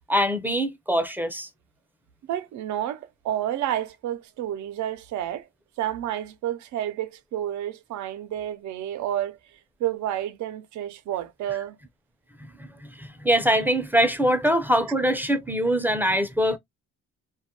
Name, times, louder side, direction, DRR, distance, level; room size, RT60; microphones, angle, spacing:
voice 1, 0.1-1.5 13.0-16.6, equal, 5° right, 0.5 m, -23 dB
voice 2, 2.2-5.5 5.8-9.4 9.8-11.8, right 12 dB, 75° right, 0.5 m, -30 dB
2.2 x 2.1 x 2.8 m
cardioid pair, 90°, 30 cm